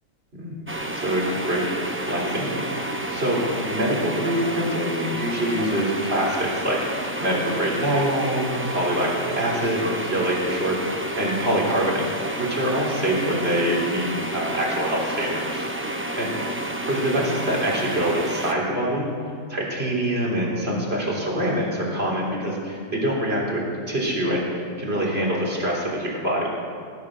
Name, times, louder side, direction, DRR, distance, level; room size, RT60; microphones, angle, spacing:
sound 1, 0.7-18.5, right 1 dB, 10° right, 0.7 m, -30 dB
voice 1, 0.9-1.7 2.0-6.9 7.2-12.0 12.4-15.7 16.2-16.3 16.9-19.1 19.5-26.5, equal, 45° right, -3 dB, 3.6 m, -25 dB
19.0 x 11.0 x 6.2 m, 2.2 s
omnidirectional pair, 1.4 m